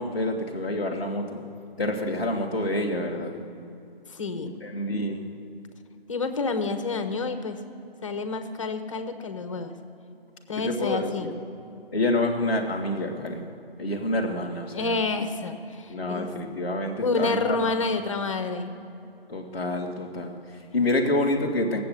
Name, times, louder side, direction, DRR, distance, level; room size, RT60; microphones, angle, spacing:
voice 1, 0.0-1.4 1.8-3.4 4.4-5.3 10.6-11.4 11.9-13.5 13.8-15.0 15.9-17.8 19.3-21.8, left 1 dB, 10° left, -9 dB, 0.5 m, -28 dB
voice 2, 4.1-4.5 6.1-7.6 8.0-9.8 10.5-11.3 14.7-16.3 17.0-18.7, left 3 dB, 30° left, 8 dB, 0.9 m, -28 dB
17.5 x 7.6 x 8.3 m, 2.6 s
figure-of-eight pair, 145°, 31 cm